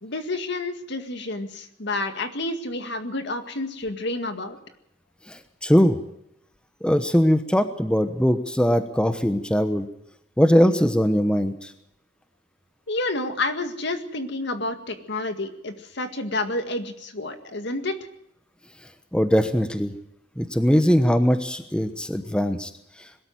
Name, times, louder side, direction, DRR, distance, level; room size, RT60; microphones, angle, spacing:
voice 1, 0.0-4.6 12.9-18.0, left 2 dB, 60° left, 7 dB, 2.0 m, -29 dB
voice 2, 5.3-6.0 6.8-9.9 10.4-11.7 19.1-19.9 20.4-22.7, equal, 5° left, 9 dB, 1.1 m, -21 dB
21.5 x 13.0 x 9.3 m, 0.78 s
head